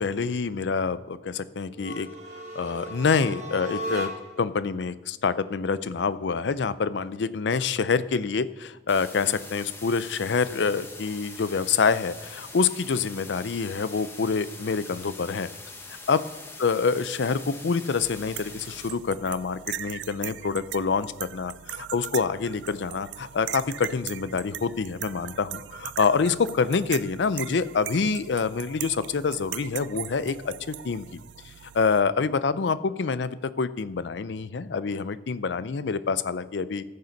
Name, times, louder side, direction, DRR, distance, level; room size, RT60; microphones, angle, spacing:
voice 1, 0.0-2.1 2.5-4.1 4.4-15.5 16.1-16.2 16.6-31.1 31.7-36.8, left 5 dB, 80° left, 15 dB, 0.5 m, -26 dB
sound 1, 1.7-4.5, equal, 40° right, 1.4 m, -36 dB
sound 2, 8.9-18.9, left 3 dB, 15° left, 1.1 m, -43 dB
sound 3, 18.0-32.0, right 12 dB, 85° right, 0.4 m, -39 dB
15.0 x 6.7 x 5.3 m, 1.1 s
head